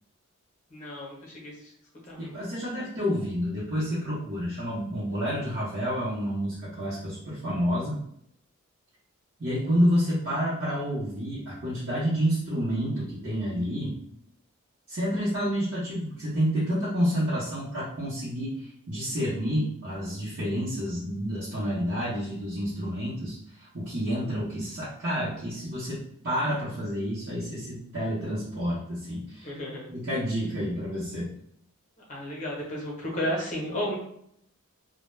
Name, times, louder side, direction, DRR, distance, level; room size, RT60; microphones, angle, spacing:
voice 1, 0.7-1.7 2.1-2.4 29.4-29.9 32.1-33.9, equal, 35° left, -3 dB, 0.7 m, -33 dB
voice 2, 2.2-8.0 9.4-14.0 14.9-29.5 29.9-31.3, equal, 50° right, -10 dB, 0.7 m, -29 dB
2.2 x 2.1 x 3.1 m, 0.71 s
head